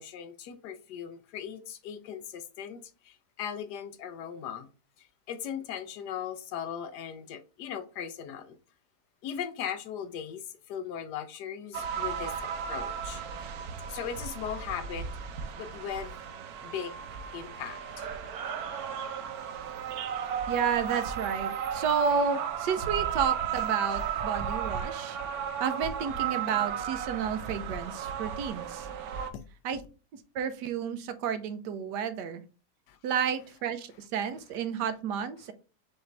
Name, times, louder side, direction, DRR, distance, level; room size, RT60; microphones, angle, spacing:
voice 1, 0.0-4.7 5.0-8.6 9.2-13.2 13.9-15.1 15.6-16.2 16.6-16.9 17.3-18.1 29.3-29.4 32.9-33.0, left 8 dB, 75° left, 1.2 m, -38 dB
sound 1, 11.7-29.3, right 8 dB, 70° right, 1.1 m, -34 dB
voice 2, 20.5-25.2 25.6-28.9 29.6-29.8 30.3-32.4 33.0-35.5, right 7 dB, 85° right, 1.3 m, -31 dB
5.8 x 2.6 x 3.3 m
omnidirectional pair, 1.8 m